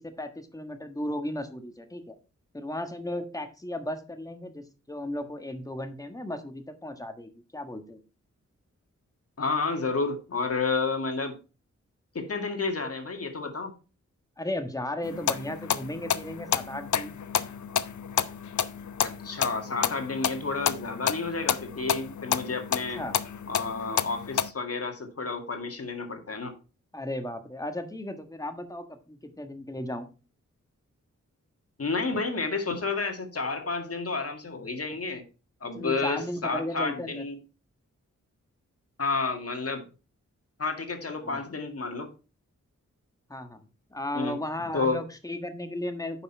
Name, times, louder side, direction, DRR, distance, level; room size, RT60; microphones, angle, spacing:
voice 1, 0.0-2.2 2.5-8.0 14.4-17.1 22.9-23.1 26.9-30.1 35.7-37.2 41.2-41.4 43.3-43.6 43.9-46.2, left 1 dB, 10° left, 7 dB, 1.4 m, -35 dB
voice 2, 9.4-11.4 12.1-13.7 19.0-23.0 23.5-26.5 31.8-35.2 35.6-37.4 39.0-39.8 40.6-42.1 44.1-44.3 44.7-45.0, left 4 dB, 50° left, 5 dB, 1.9 m, -30 dB
sound 1, 15.0-24.5, left 8 dB, 75° left, 0.6 m, -30 dB
9.0 x 5.8 x 4.4 m, 0.34 s
wide cardioid pair, 75°, 30 cm